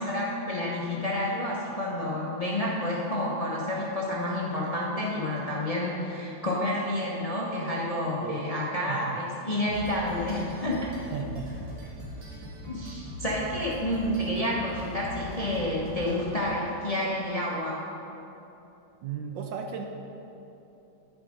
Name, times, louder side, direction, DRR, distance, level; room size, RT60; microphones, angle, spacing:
voice 1, 0.0-10.9 12.7-17.9, left 1 dB, 25° left, -5 dB, 0.8 m, -29 dB
voice 2, 8.9-9.2 11.1-12.0 19.0-19.8, right 7 dB, 70° right, 3 dB, 1.3 m, -36 dB
sound 1, 9.6-16.8, left 1 dB, 50° right, 1.9 m, -41 dB
11.5 x 7.2 x 5.2 m, 3.0 s
omnidirectional pair, 2.3 m